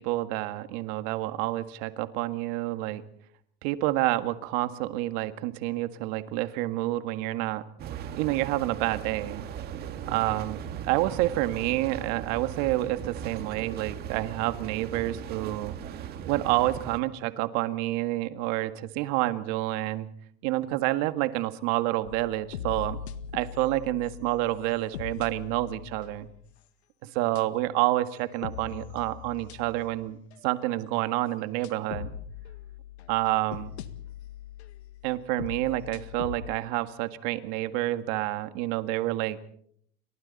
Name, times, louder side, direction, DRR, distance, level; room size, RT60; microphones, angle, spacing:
voice 1, 0.0-3.0 3.6-7.6 8.2-9.5 10.1-10.6 10.9-15.7 16.3-20.1 20.4-23.0 23.3-26.3 27.0-32.1 33.1-33.8 35.0-39.4, right 16 dB, 45° right, 10 dB, 1.8 m, -28 dB
sound 1, 7.8-17.0, right 9 dB, 30° right, 2.0 m, -38 dB
sound 2, 22.1-26.5 27.4-27.7 28.2-30.0 30.3-30.4 31.6-36.6, left 9 dB, 80° left, 1.9 m, -41 dB
30.0 x 25.0 x 4.2 m, 0.65 s
supercardioid pair, 140°, 32 cm